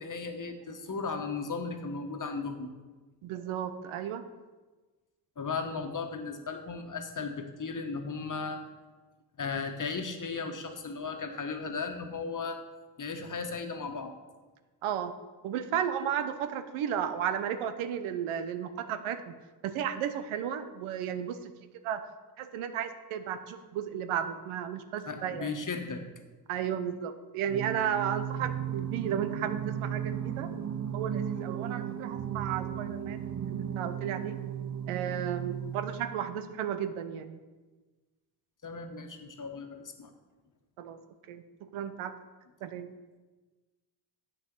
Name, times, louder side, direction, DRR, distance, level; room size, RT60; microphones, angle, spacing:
voice 1, 0.0-2.7 5.4-8.6 9.4-12.6 13.0-14.1 25.1-26.1 38.6-40.1, left 4 dB, 40° left, 5 dB, 1.4 m, -36 dB
voice 2, 3.2-4.2 14.8-15.1 15.4-19.3 19.6-21.5 21.8-22.0 22.4-25.5 26.5-30.5 30.9-33.2 33.5-34.4 34.9-37.4 40.8-41.0 41.3-41.4 41.7-42.1 42.6-42.9, right 9 dB, 80° right, 10 dB, 0.8 m, -34 dB
Singing, 27.5-36.4, right 9 dB, 35° right, 0.7 m, -35 dB
7.8 x 6.5 x 6.1 m, 1.3 s
supercardioid pair, 50°, 49 cm